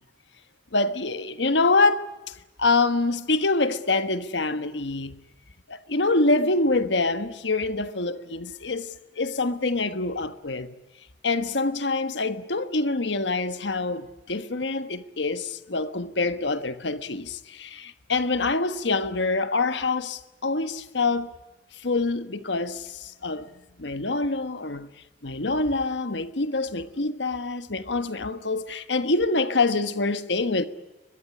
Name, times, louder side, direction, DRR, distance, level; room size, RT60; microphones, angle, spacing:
voice 1, 0.7-5.2 5.7-10.7 11.2-21.3 21.7-23.5 23.8-24.9 25.2-30.6, left 3 dB, 75° left, 1.4 m, -26 dB
23.0 x 22.5 x 9.8 m
head